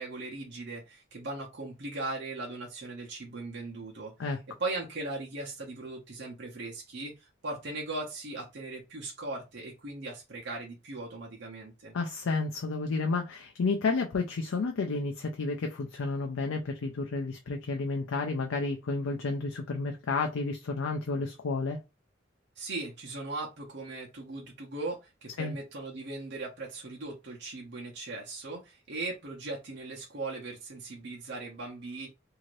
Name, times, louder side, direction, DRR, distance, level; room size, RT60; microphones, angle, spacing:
voice 1, 0.0-4.1 4.6-11.9 22.6-32.1, right 2 dB, 60° right, 0.8 m, -38 dB
voice 2, 11.9-21.8 25.4-25.6, left 3 dB, 90° left, 0.5 m, -31 dB
2.7 x 2.5 x 3.1 m
head